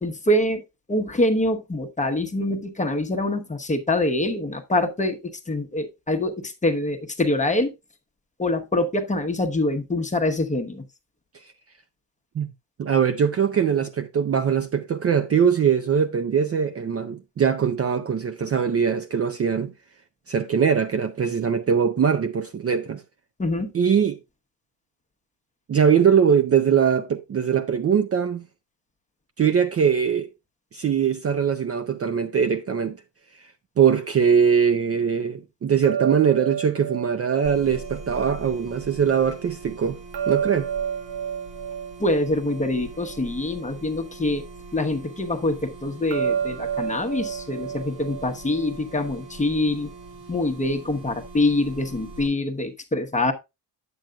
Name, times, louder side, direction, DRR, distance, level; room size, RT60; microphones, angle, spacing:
voice 1, 0.0-0.6 0.9-7.7 8.4-10.8 23.4-23.7 42.0-44.4 44.7-49.9 50.3-53.3, left 1 dB, 15° left, 0.9 m, -25 dB
voice 2, 12.8-19.7 20.3-23.0 23.7-24.2 25.7-28.5 29.4-30.3 30.7-33.0 33.8-40.0 40.3-40.7, right 7 dB, 35° right, 0.5 m, -21 dB
sound 1, 35.8-38.9 40.1-43.6 46.1-49.2, right 8 dB, 50° right, 0.9 m, -31 dB
sound 2, 37.4-52.3, right 3 dB, 80° right, 6.0 m, -42 dB
8.9 x 7.8 x 2.3 m
cardioid pair, 120°, 42 cm